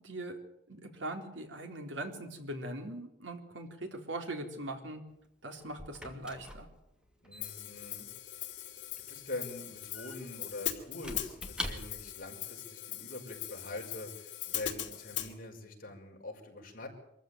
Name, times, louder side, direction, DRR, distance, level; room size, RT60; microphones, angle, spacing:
voice 1, 0.0-0.3 0.7-5.0 5.4-6.7, right 1 dB, 75° right, 4 dB, 3.8 m, -41 dB
Squeak / Wood, 5.1-12.3, equal, 5° right, 2.5 m, -46 dB
voice 2, 7.2-8.1 9.1-16.9, left 2 dB, 45° left, 1 dB, 5.5 m, -44 dB
Hi-hat, 7.4-15.3, left 12 dB, 65° left, 2.7 m, -41 dB
24.5 x 14.5 x 9.2 m, 0.84 s
head